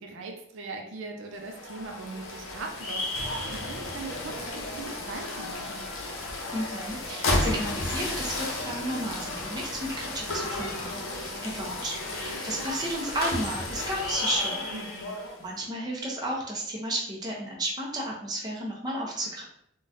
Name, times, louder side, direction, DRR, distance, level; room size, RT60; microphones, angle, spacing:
voice 1, 0.0-5.9 14.7-15.2, right 3 dB, 70° right, 2 dB, 0.4 m, -40 dB
sound 1, 1.4-15.4, left 2 dB, 85° left, 0.7 m, -33 dB
voice 2, 6.5-14.7 15.4-19.4, right 1 dB, 20° right, -3 dB, 0.6 m, -33 dB
sound 2, 6.6-7.0 9.0-9.5 10.5-11.0 12.7-12.8 13.4-13.8, right 1 dB, 10° left, 1.1 m, -45 dB
3.8 x 2.2 x 2.5 m, 0.69 s
head